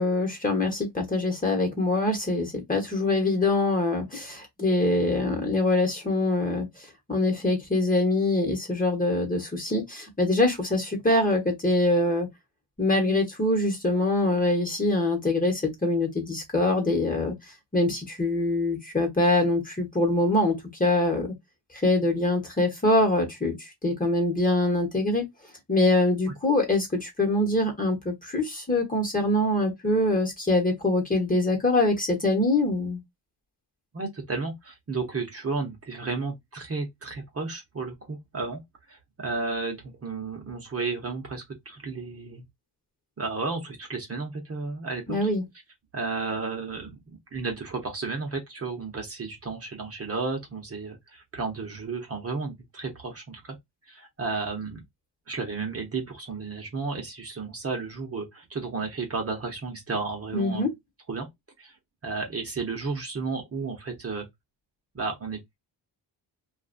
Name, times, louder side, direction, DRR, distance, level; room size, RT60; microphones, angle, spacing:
voice 1, 0.0-6.7 7.1-12.3 12.8-17.3 17.7-21.3 21.8-23.5 23.8-25.3 25.7-33.0 45.1-45.4 60.3-60.7, left 2 dB, 20° left, 1.2 m, -24 dB
voice 2, 33.9-38.6 38.9-42.4 43.2-45.3 45.9-53.6 53.9-54.8 55.3-60.7 61.1-61.3 61.6-61.7 62.0-64.3 64.9-65.6, right 4 dB, 30° right, 1.0 m, -33 dB
2.6 x 2.4 x 2.6 m
cardioid pair, 100°, 45 cm